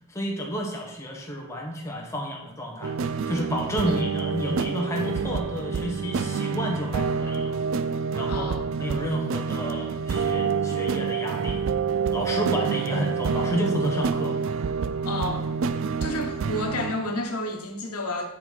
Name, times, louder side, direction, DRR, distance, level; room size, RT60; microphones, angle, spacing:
voice 1, 0.1-2.9 3.3-7.6 8.1-8.5 8.8-11.6 12.1-14.4, equal, 15° left, -1 dB, 1.1 m, -31 dB
sound 1, 2.8-17.2, right 5 dB, 60° right, 0.4 m, -27 dB
voice 2, 8.3-8.7 12.9-13.0 15.0-15.5 16.0-18.3, left 1 dB, 80° left, 3 dB, 1.1 m, -31 dB
9.7 x 4.5 x 4.1 m, 0.89 s
head